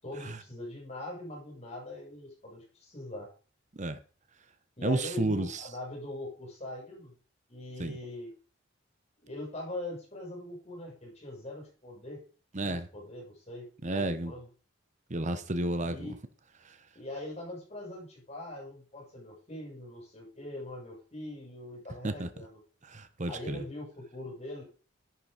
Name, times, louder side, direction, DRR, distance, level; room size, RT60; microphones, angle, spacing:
voice 1, 0.0-3.3 4.8-7.1 7.5-8.3 9.2-12.2 12.6-14.5 15.8-16.1 16.9-22.6 23.3-24.6, left 1 dB, 35° left, 6.4 m, -42 dB
voice 2, 4.8-5.6 7.8-8.0 12.5-12.9 13.8-14.3 15.1-16.1 16.6-16.8 22.0-22.3 22.9-23.6, right 2 dB, 40° right, 1.0 m, -31 dB
11.0 x 8.8 x 5.1 m
head